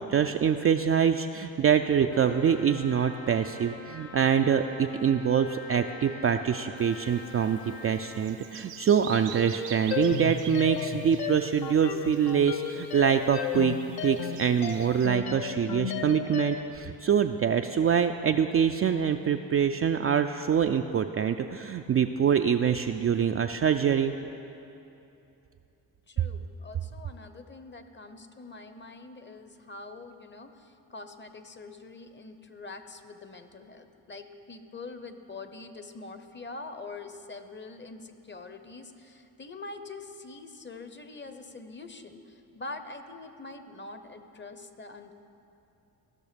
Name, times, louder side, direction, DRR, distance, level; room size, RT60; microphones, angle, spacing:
voice 1, 0.0-13.8 14.0-24.1, right 7 dB, 35° right, 6 dB, 0.4 m, -25 dB
Trumpet, 2.1-8.2, left 2 dB, 80° left, 2.9 m, -45 dB
Bird vocalization bird call bird song, 6.8-15.1, right 9 dB, 75° right, 0.8 m, -47 dB
sound 1, 9.9-16.8, left 8 dB, 60° left, 0.7 m, -34 dB
voice 2, 26.1-45.1, left 3 dB, 25° left, 9 dB, 0.8 m, -44 dB
15.0 x 6.3 x 5.2 m, 2.8 s
supercardioid pair, 60°, 43 cm